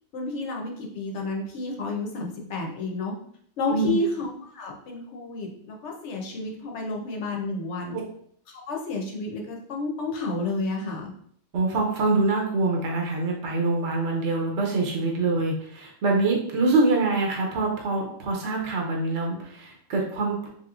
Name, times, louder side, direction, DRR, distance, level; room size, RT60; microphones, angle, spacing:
voice 1, 0.1-3.1 3.6-4.3 4.5-8.0 8.7-11.1, left 3 dB, 65° left, 0 dB, 0.9 m, -30 dB
voice 2, 3.7-4.0 7.9-8.0 11.5-20.5, right 3 dB, 60° right, -1 dB, 0.9 m, -25 dB
3.6 x 2.9 x 2.4 m, 0.63 s
omnidirectional pair, 1.4 m